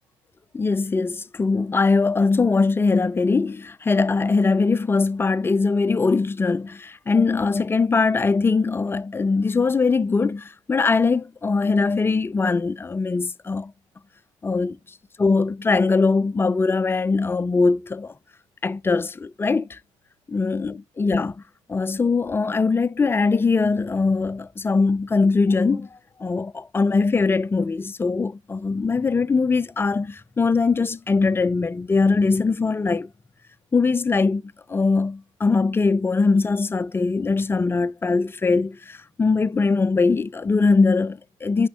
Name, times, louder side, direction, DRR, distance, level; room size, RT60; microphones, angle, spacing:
voice 1, 0.5-13.7 14.4-14.8 15.2-18.1 18.6-19.8 20.3-21.3 21.7-25.9 26.2-33.1 33.7-41.7, left 4 dB, 15° left, 0.3 m, -21 dB
10.0 x 4.3 x 3.7 m
figure-of-eight pair, 55°, 16 cm